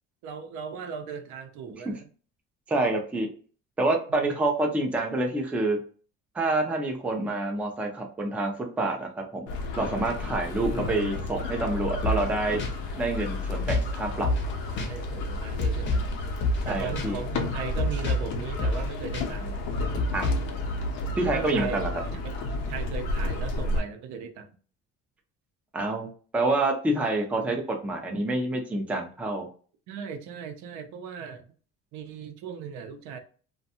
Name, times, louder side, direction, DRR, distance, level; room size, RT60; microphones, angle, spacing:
voice 1, 0.2-2.1 4.1-4.4 14.0-14.5 14.9-16.1 16.7-19.6 21.3-21.8 22.1-24.5 29.9-31.5 31.9-33.2, right 6 dB, 75° right, 7 dB, 0.6 m, -38 dB
voice 2, 2.7-3.3 3.8-5.8 6.3-9.5 9.8-12.6 13.0-14.3 16.6-17.2 20.1-20.3 21.2-21.9 25.7-26.1 26.3-29.5, right 2 dB, 5° right, 2 dB, 0.3 m, -27 dB
sound 1, 9.5-23.8, left 2 dB, 90° left, 0.6 m, -32 dB
sound 2, 12.0-12.3 12.6-12.7 13.7-14.0 14.2-14.5 14.8-14.9 15.6-16.1 16.4-16.7 17.0-17.1 17.8-18.3 18.6-18.9 19.1-19.3 20.0-20.5, left 1 dB, 40° left, 0.6 m, -27 dB
2.5 x 2.2 x 2.7 m, 0.40 s
cardioid pair, 145°, 29 cm